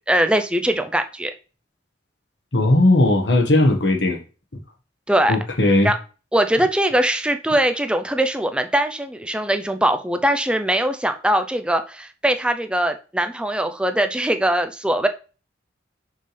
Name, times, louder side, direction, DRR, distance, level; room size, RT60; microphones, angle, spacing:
voice 1, 0.1-1.3 5.1-5.4 5.8-6.0 6.3-15.1, right 1 dB, 5° right, 8 dB, 0.5 m, -21 dB
voice 2, 2.5-4.2 5.3-5.9, left 1 dB, 60° left, 3 dB, 1.4 m, -17 dB
5.7 x 5.5 x 3.4 m, 0.34 s
head